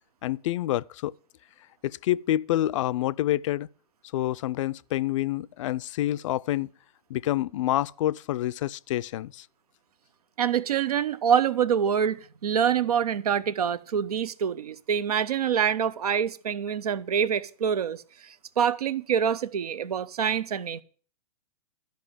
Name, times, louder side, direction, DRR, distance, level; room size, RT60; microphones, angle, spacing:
voice 1, 0.2-1.1 1.8-3.7 4.1-6.7 7.1-9.5, left 14 dB, 55° left, 0.5 m, -27 dB
voice 2, 10.4-20.8, right 8 dB, 75° right, 0.8 m, -26 dB
13.0 x 5.4 x 8.9 m
hypercardioid pair, 115°, 20 cm